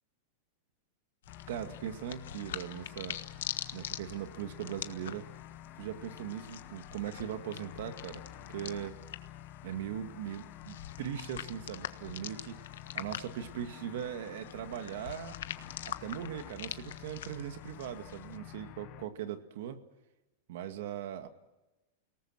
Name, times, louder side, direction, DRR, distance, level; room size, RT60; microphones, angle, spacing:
sound 1, 1.2-18.4, left 11 dB, 85° left, 1.4 m, -45 dB
sound 2, 1.3-19.0, left 13 dB, 35° left, 1.3 m, -49 dB
voice 1, 1.5-3.2 3.7-5.3 5.8-9.0 9.6-12.6 12.9-15.3 15.8-19.8 20.5-21.3, right 10 dB, 60° right, 8 dB, 2.2 m, -40 dB
29.5 x 19.0 x 6.1 m, 1.0 s
supercardioid pair, 165°, 0 cm